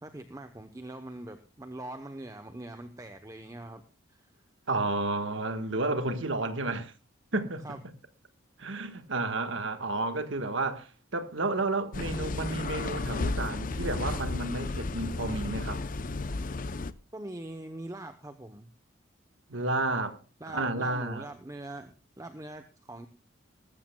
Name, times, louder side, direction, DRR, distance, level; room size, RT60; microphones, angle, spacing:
voice 1, 0.0-3.8 4.1-4.3 7.6-7.8 17.1-18.7 20.4-23.1, right 1 dB, 15° right, 0.8 m, -42 dB
voice 2, 4.7-6.9 7.3-7.6 8.6-15.8 19.5-20.2 20.5-21.2, right 2 dB, 70° right, 1.5 m, -31 dB
sound 1, 11.9-16.9, left 3 dB, 40° left, 0.6 m, -33 dB
19.5 x 13.5 x 2.3 m
head